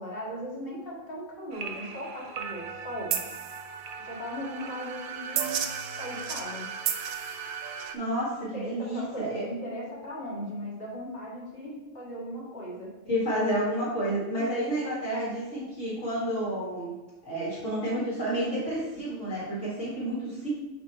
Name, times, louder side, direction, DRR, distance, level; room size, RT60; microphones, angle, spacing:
voice 1, 0.0-3.2 4.0-5.6 6.0-6.7 8.0-8.1 8.5-12.9, equal, 40° left, -6 dB, 1.9 m, -38 dB
sound 1, 1.5-7.9, right 7 dB, 80° right, 1.1 m, -34 dB
voice 2, 7.9-9.4 13.1-17.0 17.2-20.5, right 1 dB, 60° left, -7 dB, 1.9 m, -30 dB
8.6 x 2.9 x 4.3 m, 1.1 s
omnidirectional pair, 1.5 m